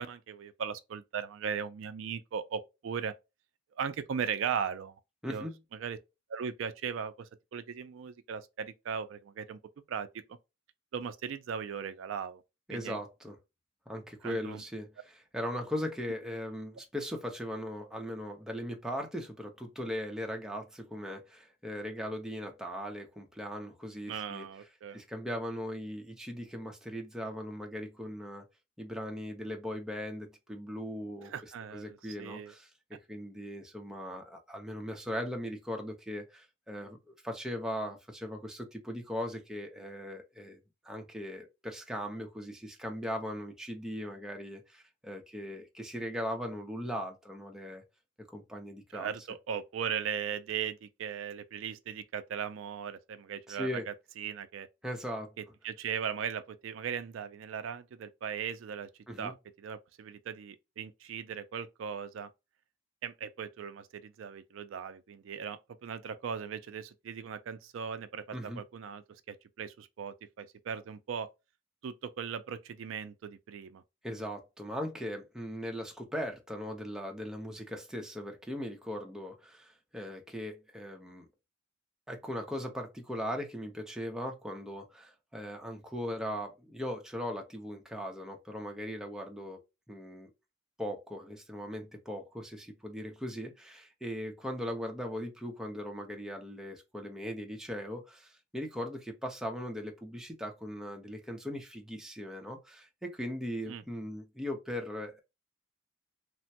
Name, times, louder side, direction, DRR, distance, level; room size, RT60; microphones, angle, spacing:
voice 1, 0.0-3.1 3.8-5.0 5.3-6.0 6.3-9.6 9.9-10.1 10.9-12.4 12.7-13.0 14.2-14.6 24.1-25.0 31.3-32.5 48.9-54.7 55.4-58.9 59.2-62.3 63.0-71.3 71.8-73.8 103.7-103.8, right 7 dB, 65° right, 0.3 m, -38 dB
voice 2, 5.2-5.6 12.7-13.4 13.9-24.5 24.9-28.4 28.8-31.3 31.7-40.6 40.8-47.8 48.3-49.1 53.5-53.9 54.8-55.3 59.1-59.3 68.3-68.6 74.0-81.3 82.1-89.6 89.9-90.3 90.8-105.2, equal, 5° right, 0.6 m, -39 dB
3.3 x 2.1 x 2.7 m
head